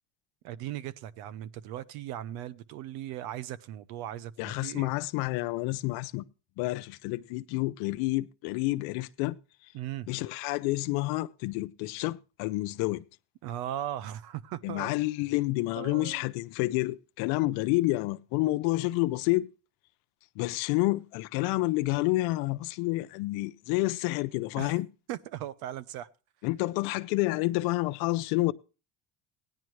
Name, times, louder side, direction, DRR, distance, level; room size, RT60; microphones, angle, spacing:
voice 1, 0.4-4.9 9.7-10.1 13.4-14.9 15.7-16.2 24.6-24.8 25.1-26.1, right 12 dB, 80° right, 0.8 m, -38 dB
voice 2, 4.4-6.2 6.6-9.4 10.1-13.0 14.6-19.5 20.4-24.9 26.4-28.5, left 19 dB, 80° left, 0.6 m, -29 dB
17.0 x 10.5 x 3.1 m
supercardioid pair, 85°, 36 cm